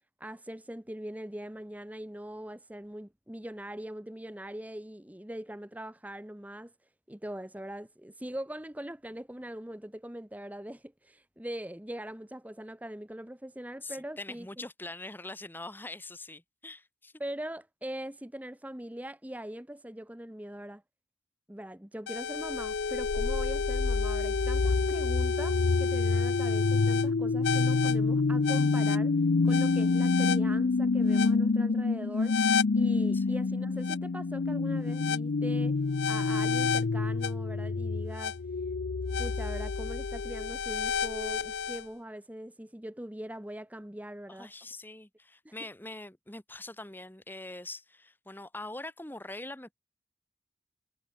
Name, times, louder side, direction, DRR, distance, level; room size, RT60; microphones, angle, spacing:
voice 1, 0.2-6.7 7.1-14.7 17.2-20.8 21.5-29.2 29.4-32.4 32.7-35.8 36.1-38.4 39.2-44.5 45.4-45.5, right 1 dB, 10° right, 1.0 m, -41 dB
voice 2, 13.8-17.1 33.1-33.3 44.3-49.7, left 2 dB, 10° left, 1.3 m, -43 dB
sound 1, 22.1-41.8, left 4 dB, 75° left, 0.5 m, -27 dB
head